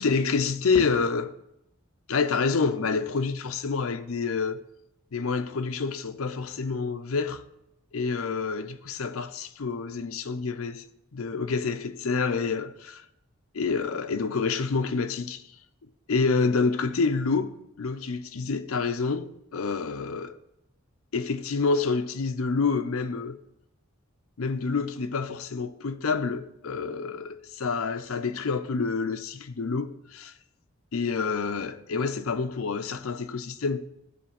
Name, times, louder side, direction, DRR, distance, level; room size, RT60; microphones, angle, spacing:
voice 1, 0.0-1.4 2.1-4.6 5.1-7.4 7.9-10.9 11.1-13.0 13.5-15.5 16.1-20.4 21.1-23.4 24.4-30.3 30.9-33.9, left 4 dB, 85° left, 0.6 m, -28 dB
10.0 x 4.0 x 5.9 m
head